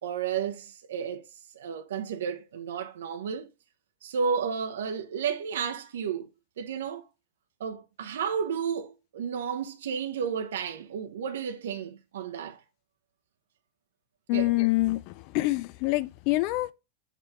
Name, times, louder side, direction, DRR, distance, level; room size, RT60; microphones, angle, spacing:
voice 1, 0.0-1.3 1.5-3.5 4.0-6.3 6.6-7.0 7.6-12.6 14.3-14.5, right 7 dB, 60° right, 1.0 m, -32 dB
voice 2, 14.3-16.7, left 20 dB, 45° left, 0.6 m, -26 dB
8.3 x 3.5 x 5.6 m
figure-of-eight pair, 90°, 0 cm